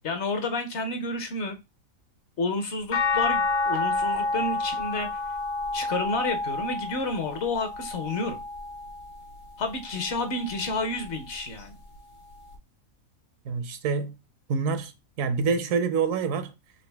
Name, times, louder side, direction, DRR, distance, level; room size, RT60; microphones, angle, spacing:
voice 1, 0.0-1.6 2.4-5.1 5.7-8.4 9.6-11.8, left 3 dB, 60° left, 0.9 m, -30 dB
sound 1, 2.9-9.2 9.8-11.1 12.5-12.6, left 3 dB, 75° left, 1.5 m, -30 dB
voice 2, 13.4-14.1 14.5-14.9 15.2-16.5, right 5 dB, 75° right, 1.0 m, -26 dB
4.1 x 2.5 x 3.3 m
omnidirectional pair, 1.5 m